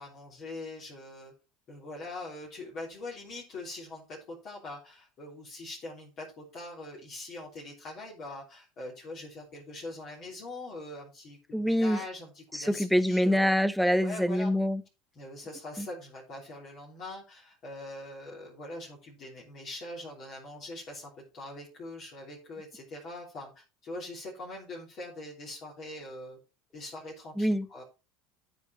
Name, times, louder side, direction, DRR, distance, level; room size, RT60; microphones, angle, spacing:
voice 1, 0.0-1.3 1.7-13.5 14.0-14.5 15.2-26.4 26.7-27.8, left 2 dB, 45° left, 3.5 m, -43 dB
voice 2, 11.5-12.0 12.5-14.8 15.8-15.9 27.4-27.7, equal, ahead, 0.7 m, -25 dB
13.5 x 5.0 x 4.6 m
figure-of-eight pair, 75°, 0 cm